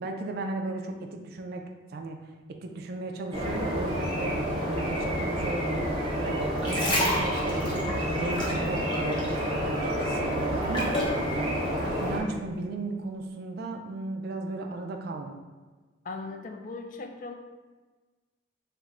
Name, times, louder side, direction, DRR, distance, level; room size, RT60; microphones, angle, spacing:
voice 1, 0.0-2.2 2.5-4.4 4.7-5.9 6.2-9.2 9.7-15.4, right 2 dB, 55° right, 4 dB, 0.3 m, -35 dB
sound 1, 3.3-12.2, equal, 35° right, 0.8 m, -29 dB
sound 2, 6.4-9.5 9.8-11.2 11.8-11.9, left 1 dB, 25° left, 0.7 m, -31 dB
voice 2, 16.0-17.3, left 3 dB, 45° left, 5 dB, 0.3 m, -38 dB
3.3 x 2.1 x 3.6 m, 1.3 s
head